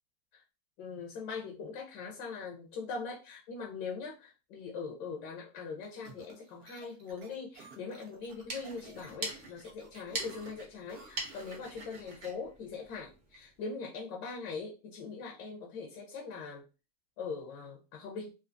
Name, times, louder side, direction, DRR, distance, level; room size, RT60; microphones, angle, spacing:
voice 1, 0.8-16.6 17.2-18.3, left 5 dB, 35° left, 0 dB, 0.5 m, -41 dB
sound 1, 5.8-11.7, right 4 dB, 80° right, 0.9 m, -54 dB
sound 2, 8.2-13.5, right 2 dB, 45° right, 1.0 m, -43 dB
2.4 x 2.3 x 2.5 m, 0.31 s
supercardioid pair, 145°, 47 cm